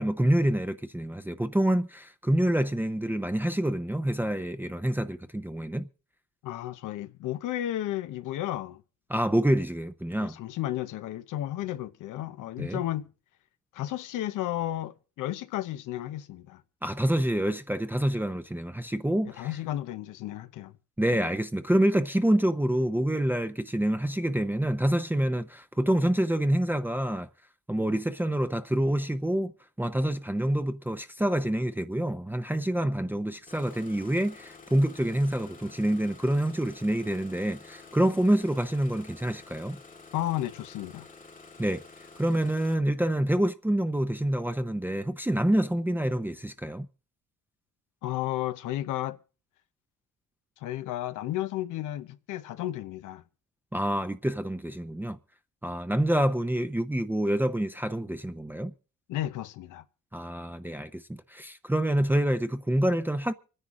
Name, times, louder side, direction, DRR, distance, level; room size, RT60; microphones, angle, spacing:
voice 1, 0.0-5.9 9.1-10.4 12.6-12.8 16.8-19.5 21.0-27.3 27.7-29.5 29.8-39.8 41.6-41.8 42.2-46.9 53.7-55.2 55.6-58.7 60.1-63.3, right 1 dB, 5° right, 0.7 m, -27 dB
voice 2, 6.4-8.8 10.2-13.1 13.7-16.6 19.4-20.7 21.1-21.2 40.1-41.1 48.0-49.2 50.6-53.2 59.1-59.8, left 13 dB, 85° left, 0.9 m, -33 dB
Engine starting, 33.5-42.8, left 4 dB, 25° left, 1.3 m, -50 dB
25.0 x 10.0 x 3.7 m
cardioid pair, 90°, 30 cm